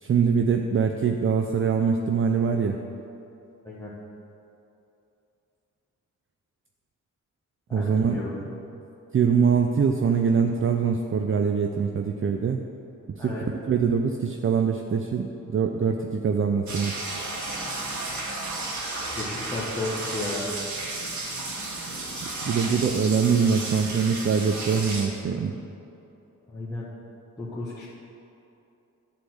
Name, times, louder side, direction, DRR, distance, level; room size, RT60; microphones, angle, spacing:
voice 1, 0.0-2.8 7.7-8.2 9.1-12.6 13.2-16.9 22.4-25.5, right 6 dB, 40° right, 4 dB, 0.5 m, -23 dB
voice 2, 7.7-8.3 13.2-13.5 19.1-20.4 26.5-26.9 27.4-27.9, left 2 dB, 10° left, -10 dB, 1.5 m, -33 dB
sound 1, 16.7-25.1, right 2 dB, 65° right, 1.8 m, -33 dB
11.5 x 4.3 x 7.8 m, 2.8 s
wide cardioid pair, 125°, 32 cm